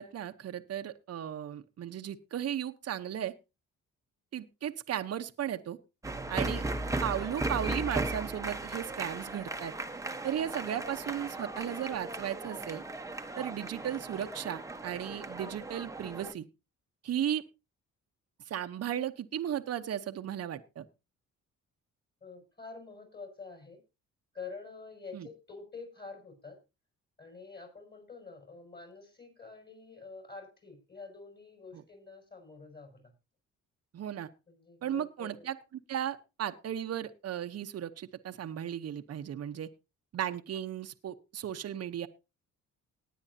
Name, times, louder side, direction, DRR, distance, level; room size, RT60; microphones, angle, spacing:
voice 1, 0.0-3.3 4.3-5.8 6.3-6.7 7.0-9.7 10.2-12.8 13.4-16.4 17.0-17.4 18.5-20.8 25.1-25.3 31.7-31.8 33.9-34.3 34.8-35.6 35.9-39.7 40.1-42.1, right 10 dB, 55° right, 8 dB, 1.0 m, -35 dB
sound 1, 6.0-16.3, right 2 dB, 10° right, 1.0 m, -37 dB
voice 2, 22.2-23.8 24.3-26.6 27.2-33.1 34.5-35.5, left 4 dB, 35° left, 2 dB, 6.3 m, -47 dB
18.5 x 9.7 x 2.8 m, 0.27 s
cardioid pair, 90°, 30 cm